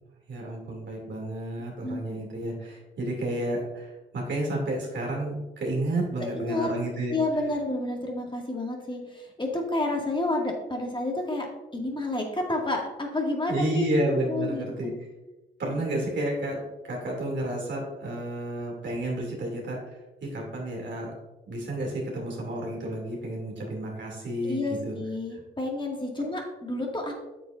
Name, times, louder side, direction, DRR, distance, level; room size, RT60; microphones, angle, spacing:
voice 1, 0.3-7.2 13.5-14.9 15.6-16.6 16.8-19.8 20.2-21.1 21.5-24.9, right 1 dB, 65° right, -1 dB, 2.6 m, -31 dB
voice 2, 6.3-6.7 7.1-11.5 11.7-14.9 15.6-15.8 24.4-27.1, left 2 dB, 25° left, 0 dB, 2.0 m, -30 dB
8.4 x 6.8 x 2.6 m, 1.0 s
supercardioid pair, 45°, 20 cm